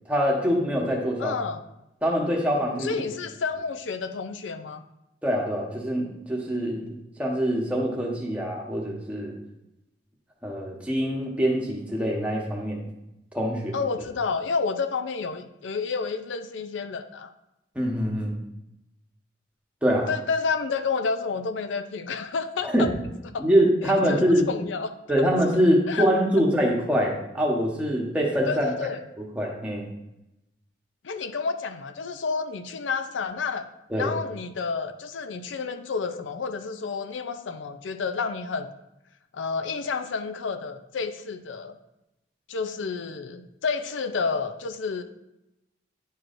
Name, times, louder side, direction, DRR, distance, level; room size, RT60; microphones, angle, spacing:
voice 1, 0.1-1.4 2.0-3.0 5.2-6.9 7.2-9.3 10.4-12.8 13.3-13.8 17.7-18.3 19.8-20.1 22.6-22.9 23.4-24.5 25.1-28.9 29.2-29.9 33.9-34.1, equal, 5° right, -2 dB, 1.1 m, -24 dB
voice 2, 1.2-1.6 2.8-4.8 13.7-17.3 20.1-22.9 23.3-23.4 23.8-25.3 25.9-26.1 28.5-29.0 31.0-33.7 33.9-38.7 39.3-41.7 42.5-45.0, left 5 dB, 85° left, 8 dB, 0.5 m, -30 dB
10.0 x 4.7 x 2.6 m, 0.90 s
head